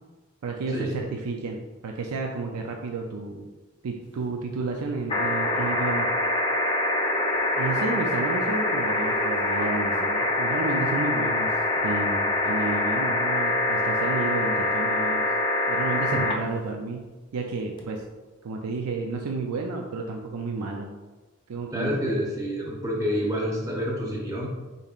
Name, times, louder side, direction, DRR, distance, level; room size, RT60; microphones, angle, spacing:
voice 1, 0.4-3.5 3.8-6.1 7.6-11.5 11.8-15.3 15.7-17.0 17.3-18.0 18.4-20.9 21.5-22.0, right 3 dB, 85° right, 1 dB, 0.4 m, -31 dB
sound 1, 5.1-16.3 17.8-17.9, left 2 dB, 20° left, 0.6 m, -25 dB
voice 2, 21.7-24.5, equal, 15° right, -2 dB, 0.8 m, -28 dB
5.3 x 4.1 x 2.4 m, 1.2 s
head